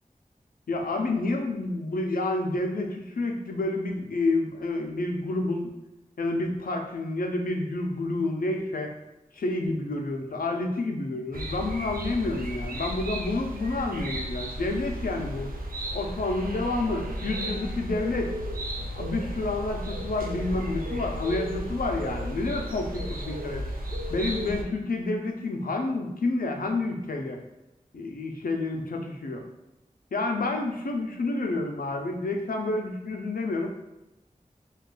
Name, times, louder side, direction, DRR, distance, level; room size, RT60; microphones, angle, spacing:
voice 1, 0.7-5.7 6.2-8.9 9.3-15.5 15.9-18.4 18.9-23.6 24.1-27.4 27.9-29.4 30.1-33.7, left 2 dB, 85° left, 3 dB, 0.4 m, -29 dB
sound 1, 11.3-24.6, equal, 90° right, 0.4 m, -34 dB
2.3 x 2.3 x 3.7 m, 0.98 s
wide cardioid pair, 55°, 14 cm